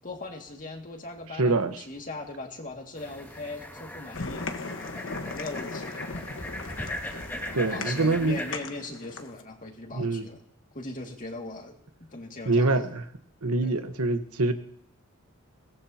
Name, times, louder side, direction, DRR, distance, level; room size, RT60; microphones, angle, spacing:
voice 1, 0.0-4.5 5.3-5.9 6.8-10.4 10.7-12.8 13.6-13.7, left 2 dB, 40° left, 2 dB, 2.2 m, -40 dB
voice 2, 1.3-1.8 7.5-8.4 9.9-10.3 12.4-13.1 13.4-14.5, right 3 dB, 90° right, 8 dB, 1.2 m, -25 dB
sound 1, 3.0-8.5, left 1 dB, 10° left, 2.0 m, -39 dB
sound 2, 4.1-9.4, left 3 dB, 60° left, 1.4 m, -38 dB
22.0 x 19.0 x 2.9 m, 0.66 s
head